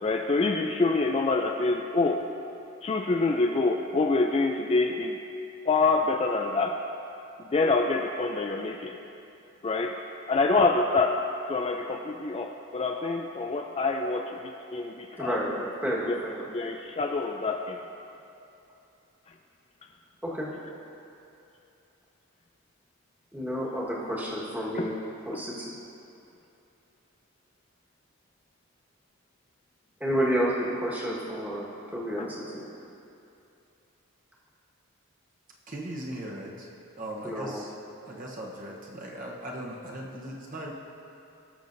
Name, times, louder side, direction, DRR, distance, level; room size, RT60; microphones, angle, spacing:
voice 1, 0.0-2.2 2.8-5.2 5.6-6.8 7.4-9.0 9.6-10.0 10.3-11.2 11.5-15.4 16.1-16.2 16.5-17.8 24.8-24.9 25.3-25.4, left 3 dB, 25° left, 3 dB, 0.3 m, -26 dB
voice 2, 15.2-16.5 20.2-20.5 23.3-24.9 25.3-25.7 30.0-32.6 37.2-37.6, equal, 5° right, -6 dB, 1.4 m, -30 dB
voice 3, 35.7-36.7 37.0-37.7 38.1-40.7, right 1 dB, 35° right, -2 dB, 1.0 m, -38 dB
19.0 x 6.7 x 2.6 m, 2.8 s
head